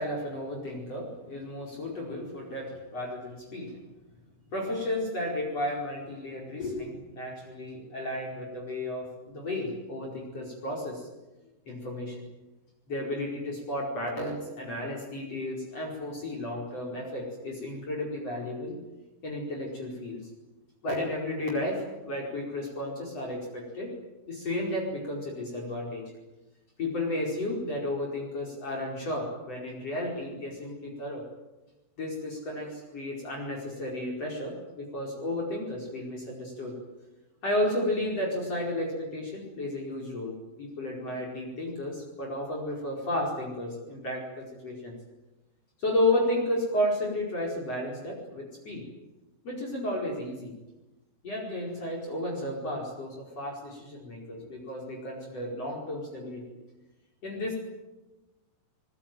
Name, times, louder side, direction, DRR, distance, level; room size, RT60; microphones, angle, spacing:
voice 1, 0.0-3.7 4.5-11.1 11.7-12.2 12.9-18.8 19.2-20.2 20.8-23.9 24.3-26.0 26.8-31.2 32.0-36.8 37.4-44.9 45.8-48.8 49.4-50.5 51.2-56.4 57.2-57.5, left 1 dB, 35° left, 0 dB, 5.7 m, -33 dB
24.5 x 22.5 x 9.3 m, 1.1 s
omnidirectional pair, 4.9 m